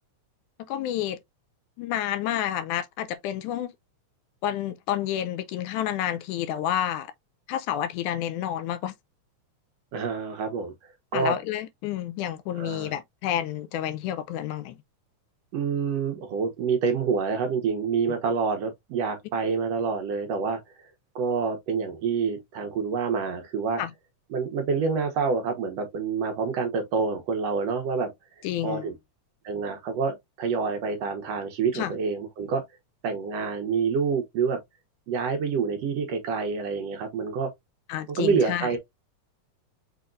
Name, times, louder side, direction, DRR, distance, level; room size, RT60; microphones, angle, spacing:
voice 1, 0.7-1.2 1.8-3.7 4.4-7.1 7.5-8.9 11.1-14.8 23.8-23.9 28.4-28.9 31.7-31.9 37.9-38.7, left 11 dB, 85° left, 2.1 m, -29 dB
voice 2, 9.9-10.7 11.1-11.4 12.6-13.0 15.5-20.6 21.2-23.8 24.3-28.1 28.6-28.9 29.4-32.6 33.0-34.6 35.1-37.5 38.1-38.8, right 5 dB, 65° right, 1.8 m, -27 dB
6.0 x 3.5 x 2.5 m
omnidirectional pair, 3.5 m